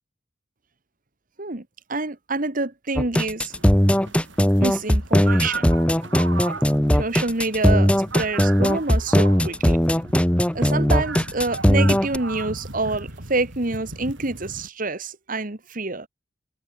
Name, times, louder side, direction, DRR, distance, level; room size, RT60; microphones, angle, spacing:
voice 1, 1.4-3.5 4.6-5.7 6.9-9.8 10.5-16.1, right 3 dB, 45° right, 1.8 m, -27 dB
sound 1, 3.0-12.2, equal, 5° left, 1.1 m, -19 dB
sound 2, 3.5-14.7, right 3 dB, 75° right, 4.0 m, -37 dB
head